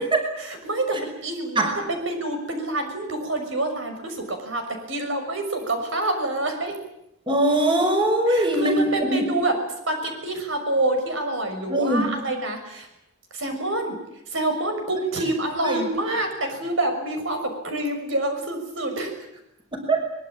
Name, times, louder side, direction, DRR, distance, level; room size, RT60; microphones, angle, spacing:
voice 1, 0.5-4.6 4.9-6.7 8.3-9.5 9.9-12.9 13.3-14.0 14.3-19.1, right 2 dB, 65° right, 5 dB, 6.2 m, -27 dB
voice 2, 7.3-9.3 11.7-12.1 15.2-15.3 15.6-15.9 19.7-20.1, right 1 dB, 25° right, 4 dB, 5.8 m, -22 dB
24.0 x 22.0 x 8.8 m, 0.81 s
head